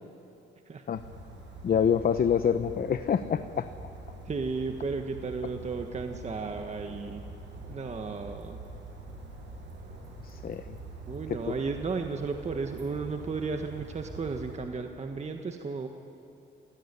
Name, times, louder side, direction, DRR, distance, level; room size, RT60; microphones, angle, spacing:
sound 1, 0.9-14.6, right 2 dB, 70° right, 6.8 m, -44 dB
voice 1, 1.6-3.7 10.2-10.8 11.3-11.5, left 7 dB, 50° left, 10 dB, 0.9 m, -26 dB
voice 2, 4.2-7.2 7.7-8.6 11.0-15.9, right 4 dB, 35° right, 4 dB, 1.5 m, -34 dB
27.5 x 17.5 x 10.0 m, 2.8 s
cardioid pair, 90°, 20 cm